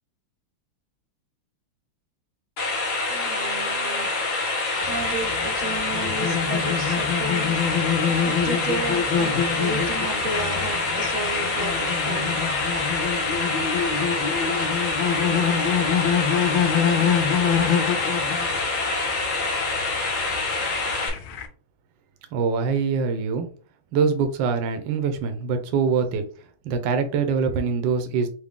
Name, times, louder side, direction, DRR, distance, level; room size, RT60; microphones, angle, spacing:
sound 1, 2.6-21.1, left 3 dB, 55° left, 1.4 m, -26 dB
voice 1, 3.1-4.1 4.9-7.6 8.2-12.4, right 3 dB, 85° right, 5 dB, 1.5 m, -33 dB
sound 2, 4.8-21.5, left 7 dB, 80° left, 1.4 m, -26 dB
voice 2, 22.3-23.5 23.9-26.2 26.6-28.3, right 5 dB, 70° right, 7 dB, 1.3 m, -23 dB
4.6 x 2.3 x 3.5 m, 0.41 s
omnidirectional pair, 2.3 m